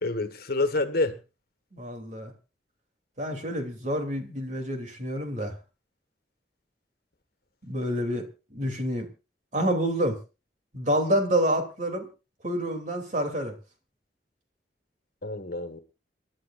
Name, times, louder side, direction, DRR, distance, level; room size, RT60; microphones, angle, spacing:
voice 1, 0.0-1.2 15.2-15.8, left 2 dB, 60° left, 1.7 m, -27 dB
voice 2, 1.7-2.3 3.2-5.5 7.7-8.2 8.5-9.1 9.5-10.2 10.7-12.1 12.4-13.5, equal, 45° right, 3.1 m, -28 dB
28.0 x 11.5 x 2.6 m
head